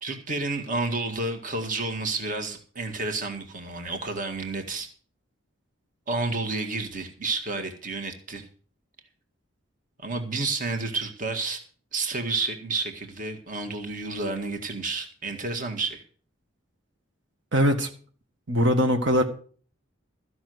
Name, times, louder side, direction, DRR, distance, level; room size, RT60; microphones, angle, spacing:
voice 1, 0.0-4.9 6.1-8.5 10.0-11.6 11.9-16.0, right 3 dB, 40° right, 5 dB, 1.8 m, -30 dB
voice 2, 17.5-17.9 18.5-19.2, equal, 65° right, 4 dB, 1.6 m, -21 dB
14.5 x 6.3 x 7.9 m, 0.43 s
head